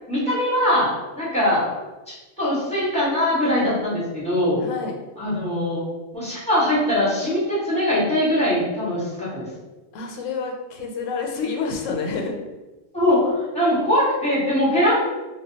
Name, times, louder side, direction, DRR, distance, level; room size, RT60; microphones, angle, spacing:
voice 1, 0.1-0.9 1.2-1.7 2.1-4.6 5.2-5.8 6.1-9.5 12.9-15.2, left 1 dB, 5° left, -9 dB, 0.9 m, -21 dB
voice 2, 4.6-4.9 9.9-12.3, left 4 dB, 80° left, 1 dB, 0.9 m, -28 dB
2.2 x 2.1 x 3.8 m, 1.1 s
omnidirectional pair, 1.3 m